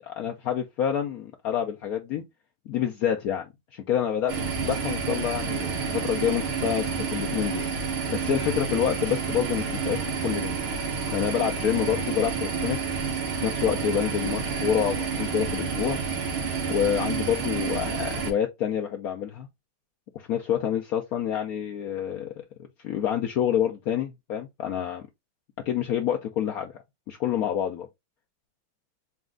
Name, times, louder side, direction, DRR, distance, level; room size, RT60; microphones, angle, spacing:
voice 1, 0.2-2.2 2.7-7.7 8.1-10.0 10.2-10.6 11.1-12.8 13.4-16.0 16.7-19.5 20.1-22.4 22.8-25.0 25.7-26.7 27.1-27.9, left 9 dB, 80° left, 0.8 m, -27 dB
sound 1, 4.3-18.3, right 5 dB, 90° right, 1.9 m, -29 dB
4.3 x 2.4 x 3.6 m
omnidirectional pair, 2.2 m